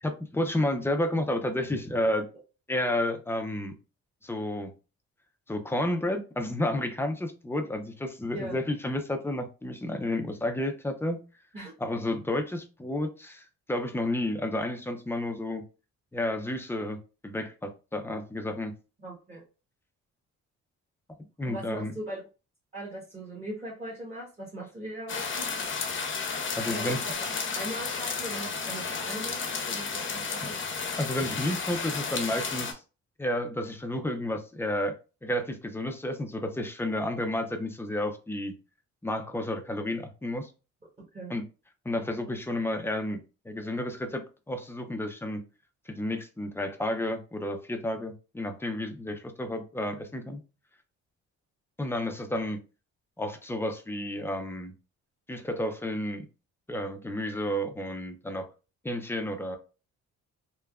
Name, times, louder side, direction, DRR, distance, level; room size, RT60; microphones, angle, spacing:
voice 1, 0.0-2.3 2.7-3.7 4.2-4.7 5.5-11.2 11.8-15.6 16.1-17.0 17.2-18.7 21.4-21.9 26.6-27.0 31.0-32.8 33.2-35.0 35.2-38.5 39.0-40.5 41.3-41.4 41.8-45.4 45.9-50.4 51.8-52.6 53.2-54.7 55.3-56.2 56.7-58.5 58.8-59.6, left 1 dB, 10° left, 5 dB, 0.5 m, -31 dB
voice 2, 19.0-19.4 21.4-22.2 22.7-25.5 26.7-27.3 27.5-30.6 41.1-41.3, right 1 dB, 20° right, -5 dB, 1.1 m, -39 dB
sound 1, 25.1-32.7, left 5 dB, 40° left, 0.7 m, -32 dB
3.3 x 2.1 x 2.3 m, 0.32 s
cardioid pair, 90°, 30 cm